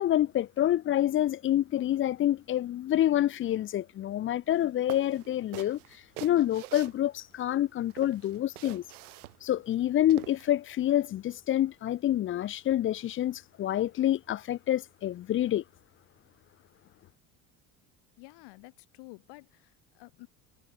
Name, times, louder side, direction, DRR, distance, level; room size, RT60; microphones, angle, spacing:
voice 1, 0.0-5.8 6.2-8.8 9.4-15.6, left 12 dB, 30° left, 0.4 m, -27 dB
sound 1, 4.5-4.6 4.9-7.5 7.9-10.5, right 17 dB, 80° right, 6.2 m, -45 dB
voice 2, 18.2-20.3, left 26 dB, 65° left, 2.7 m, -51 dB
hypercardioid pair, 65°, 44 cm